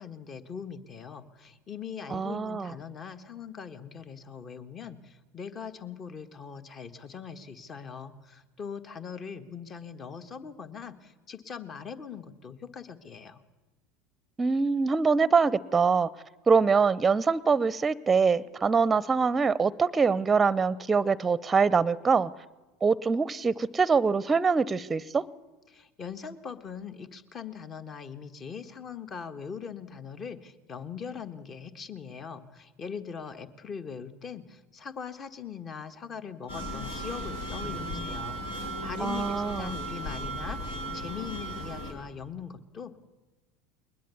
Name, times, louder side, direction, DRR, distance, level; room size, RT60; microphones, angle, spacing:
voice 1, 0.0-13.4 25.7-42.9, left 6 dB, 35° left, 10 dB, 1.5 m, -41 dB
voice 2, 2.1-2.7 14.4-16.1 16.5-22.3 22.8-25.3 39.0-39.7, right 5 dB, 20° right, 21 dB, 0.6 m, -24 dB
sound 1, 36.5-41.9, right 1 dB, 80° left, 4.2 m, -36 dB
22.0 x 20.0 x 7.1 m, 1.2 s
hypercardioid pair, 75°, 0 cm